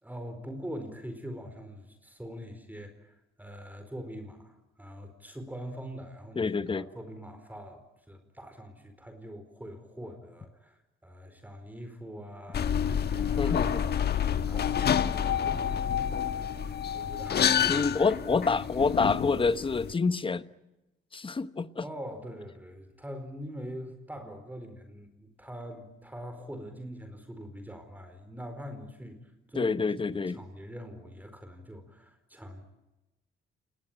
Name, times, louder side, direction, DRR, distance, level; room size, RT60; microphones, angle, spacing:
voice 1, 0.0-6.4 6.7-16.0 16.4-18.4 21.8-29.7 30.1-32.6, equal, 10° right, 4.5 m, -43 dB
voice 2, 6.3-6.9 13.4-13.8 17.7-20.5 21.1-21.8 29.5-30.4, left 4 dB, 25° left, 1.2 m, -27 dB
sound 1, 12.5-19.9, left 8 dB, 55° left, 1.4 m, -28 dB
28.5 x 20.0 x 9.1 m
cardioid pair, 90°, 20 cm